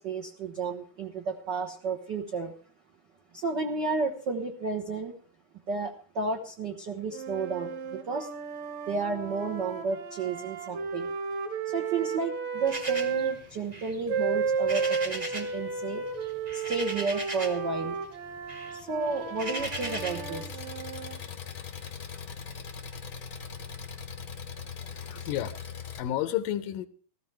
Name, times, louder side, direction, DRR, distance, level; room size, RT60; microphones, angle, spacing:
voice 1, 0.0-2.5 3.3-5.1 5.7-8.3 8.9-11.1 11.6-16.1 16.5-18.0 18.7-20.5 24.8-25.3, right 4 dB, 80° right, 3 dB, 0.9 m, -32 dB
sound 1, 7.1-13.4 14.1-21.2, right 5 dB, 60° right, 2.6 m, -33 dB
sound 2, 12.7-15.6 15.9-17.7 18.0-20.3, right 1 dB, 25° right, 0.8 m, -38 dB
Engine, 19.6-26.0, left 6 dB, 65° left, 0.9 m, -40 dB
voice 2, 24.9-26.9, left 12 dB, 85° left, 12 dB, 2.4 m, -32 dB
16.5 x 14.0 x 3.4 m, 0.42 s
omnidirectional pair, 3.9 m